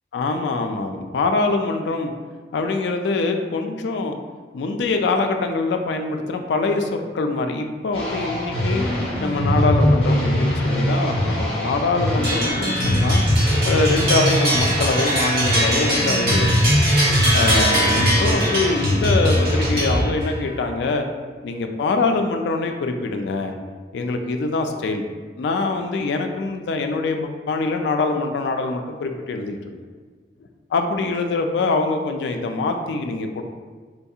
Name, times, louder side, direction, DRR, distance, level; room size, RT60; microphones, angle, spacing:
voice 1, 0.1-2.1 2.5-4.2 4.5-8.9 9.2-13.2 13.6-16.5 17.3-21.0 21.4-23.6 23.9-25.1 25.4-29.8 30.7-33.4, left 3 dB, 80° left, 5 dB, 0.3 m, -24 dB
sound 1, 7.9-20.0, equal, 30° left, 0.9 m, -21 dB
sound 2, 12.2-20.4, right 1 dB, 60° right, 1.3 m, -23 dB
4.3 x 2.7 x 2.3 m, 1.5 s
head